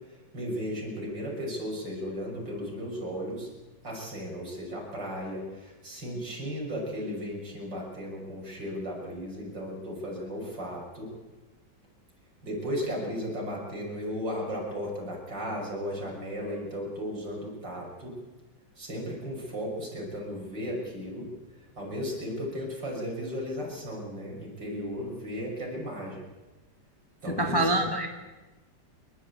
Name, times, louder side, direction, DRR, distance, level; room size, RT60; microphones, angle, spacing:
voice 1, 0.1-3.5 3.8-11.1 12.4-18.1 18.8-21.3 21.8-26.2 27.2-27.8, equal, 65° right, -2 dB, 7.1 m, -35 dB
voice 2, 27.3-28.1, right 1 dB, 10° left, 3 dB, 1.8 m, -25 dB
28.0 x 13.0 x 8.5 m, 1.2 s
omnidirectional pair, 2.1 m